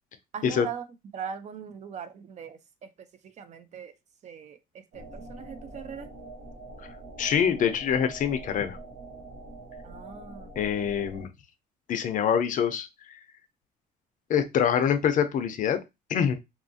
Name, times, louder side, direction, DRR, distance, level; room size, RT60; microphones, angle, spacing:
voice 1, 0.3-0.9 1.1-3.9 4.2-6.1 9.8-10.5, right 7 dB, 45° right, 11 dB, 0.4 m, -40 dB
sound 1, 4.9-11.3, right 2 dB, 75° right, 0.8 m, -44 dB
voice 2, 7.2-8.8 10.6-11.3 11.9-13.1 14.3-15.8 16.1-16.4, left 8 dB, 50° left, 9 dB, 0.5 m, -25 dB
2.7 x 2.5 x 2.6 m, 0.22 s
cardioid pair, 110°, 17 cm